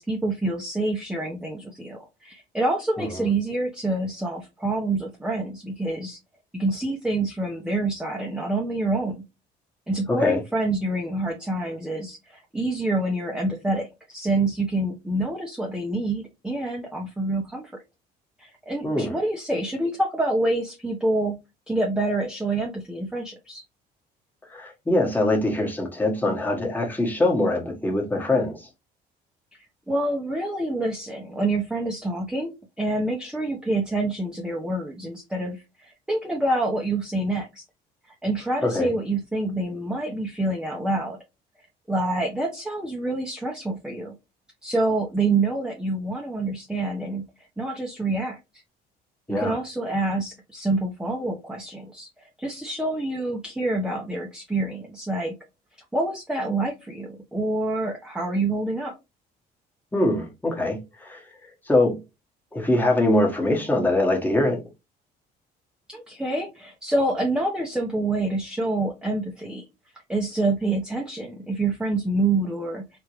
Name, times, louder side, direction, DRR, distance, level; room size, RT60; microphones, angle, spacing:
voice 1, 0.0-6.2 6.5-9.2 9.9-17.6 18.4-21.4 21.7-23.6 29.9-37.6 38.1-41.2 41.9-44.2 44.6-47.3 47.6-48.4 49.3-52.1 52.4-55.4 55.9-58.9 65.9-69.6 70.1-73.0, right 2 dB, 5° right, 0.7 m, -27 dB
voice 2, 10.1-10.4 18.8-19.1 24.5-28.7 38.6-38.9 49.3-49.6 59.9-61.2 61.7-62.0 62.5-64.6, left 1 dB, 10° left, 1.2 m, -23 dB
3.6 x 2.9 x 3.0 m
cardioid pair, 110°, 17 cm